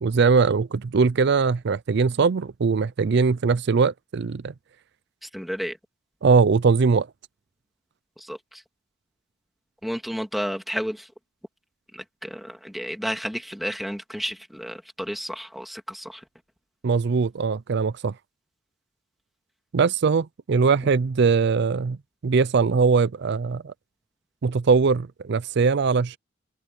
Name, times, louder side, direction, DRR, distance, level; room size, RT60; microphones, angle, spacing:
voice 1, 0.0-4.5 6.2-7.1 16.8-18.1 19.7-22.0 22.2-23.7 24.4-26.2, right 5 dB, 60° right, 0.5 m, -21 dB
voice 2, 5.3-5.8 8.2-8.6 9.8-11.1 11.9-16.2, equal, ahead, 2.7 m, -32 dB
open air
head